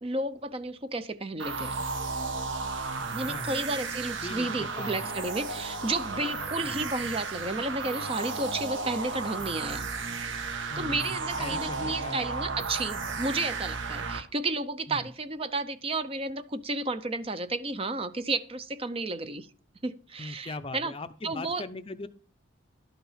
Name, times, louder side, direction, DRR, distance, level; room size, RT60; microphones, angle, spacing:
voice 1, 0.0-1.8 3.1-9.9 10.8-19.5 19.8-20.9 21.2-21.6, right 2 dB, 25° right, 0.5 m, -32 dB
sound 1, 1.4-14.2, right 4 dB, 65° right, 1.2 m, -34 dB
voice 2, 3.2-3.6 4.2-5.2 6.6-6.8 10.7-12.3 14.1-14.2 14.9-15.1 20.2-22.1, left 2 dB, 25° left, 0.5 m, -40 dB
12.0 x 5.9 x 5.6 m
head